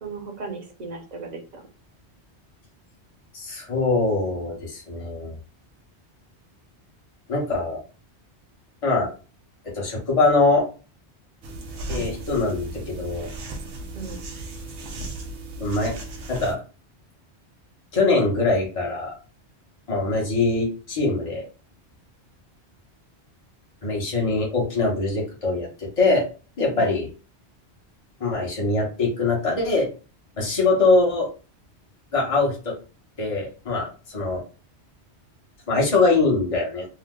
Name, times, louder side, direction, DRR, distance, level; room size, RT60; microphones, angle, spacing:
voice 1, 0.0-1.6 13.9-14.2 26.7-27.0, right 4 dB, 45° right, 2 dB, 0.8 m, -36 dB
voice 2, 3.3-5.4 7.3-7.8 8.8-9.1 9.6-10.7 11.9-13.3 15.6-16.0 16.3-16.6 17.9-19.1 19.9-21.4 23.8-26.3 26.6-27.1 28.2-29.9 30.4-31.3 32.1-32.8 33.2-34.4 35.7-36.9, left 3 dB, 30° left, -2 dB, 1.0 m, -23 dB
sound 1, 11.4-16.6, right 2 dB, 85° right, 0.9 m, -35 dB
2.8 x 2.0 x 3.6 m, 0.34 s
omnidirectional pair, 1.1 m